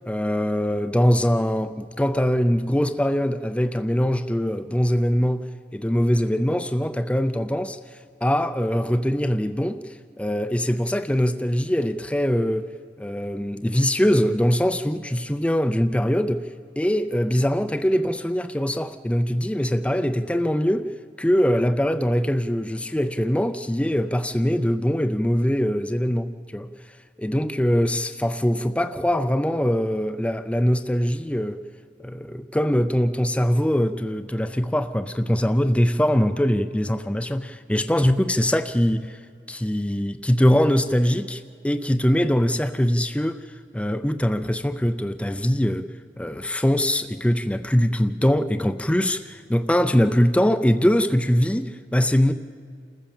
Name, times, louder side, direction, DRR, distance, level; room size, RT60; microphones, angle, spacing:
voice 1, 0.1-5.5 5.7-7.8 8.2-12.7 13.0-16.5 16.8-20.9 21.2-26.7 27.2-31.7 32.0-39.2 39.5-43.5 43.7-45.9 46.2-52.3, equal, 5° left, 0.5 m, -22 dB
28.0 x 14.5 x 7.2 m
head